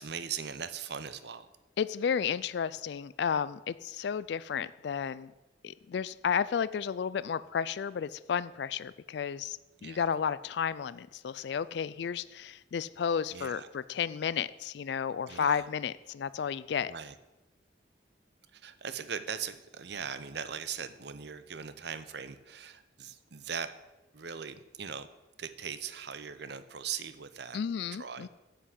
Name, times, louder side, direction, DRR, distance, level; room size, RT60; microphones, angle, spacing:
voice 1, 0.0-1.5 9.8-10.1 13.3-13.7 15.3-15.6 16.9-17.1 18.5-23.7 24.1-25.1 25.4-27.6 28.0-28.3, right 7 dB, 60° right, 12 dB, 0.7 m, -40 dB
voice 2, 1.8-5.3 5.6-16.9 27.5-28.3, left 7 dB, 60° left, 17 dB, 0.3 m, -32 dB
9.4 x 5.9 x 8.2 m, 1.0 s
head